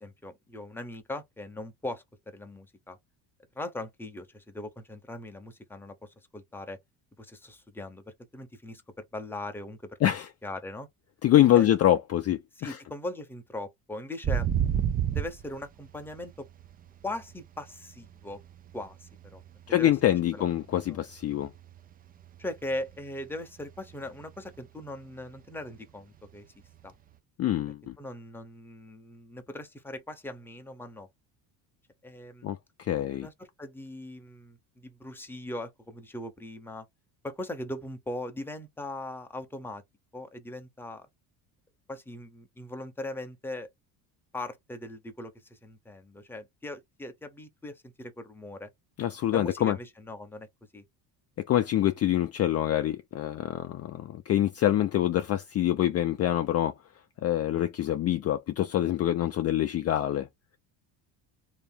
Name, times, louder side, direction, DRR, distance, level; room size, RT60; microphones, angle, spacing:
voice 1, 0.0-3.0 3.5-6.8 7.2-10.0 10.4-10.9 11.5-11.7 12.6-14.5 15.1-16.5 17.0-18.4 18.7-19.4 19.8-19.9 20.3-20.4 20.9-21.0 22.4-26.5 26.8-26.9 28.0-31.1 32.0-32.5 33.1-36.9 37.2-39.8 40.1-41.1 41.9-43.7 44.3-48.7 49.3-50.5 50.7-50.8, left 1 dB, 5° left, 0.8 m, -40 dB
voice 2, 11.2-12.8 19.7-21.5 27.4-28.0 32.4-33.3 49.0-49.8 51.5-56.7 57.2-60.3, left 12 dB, 35° left, 0.5 m, -25 dB
sound 1, 14.2-17.6 17.9-20.2 20.4-20.8 21.1-23.0 23.3-23.4 23.8-24.2 24.5-24.6 26.8-26.9, right 9 dB, 25° right, 0.3 m, -30 dB
3.2 x 2.9 x 3.6 m
cardioid pair, 120°, 43 cm